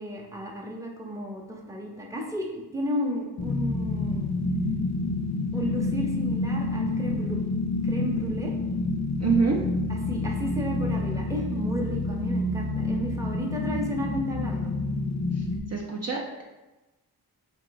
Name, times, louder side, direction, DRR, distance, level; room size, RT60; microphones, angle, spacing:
voice 1, 0.0-4.3 5.5-7.4 7.8-8.5 9.9-14.7, equal, 10° right, -1 dB, 0.7 m, -33 dB
sound 1, 3.4-15.6, left 2 dB, 45° left, 0.5 m, -28 dB
voice 2, 9.2-9.6 15.3-16.4, right 5 dB, 40° right, -1 dB, 0.5 m, -27 dB
3.7 x 2.8 x 3.9 m, 1.1 s
wide cardioid pair, 85°, 39 cm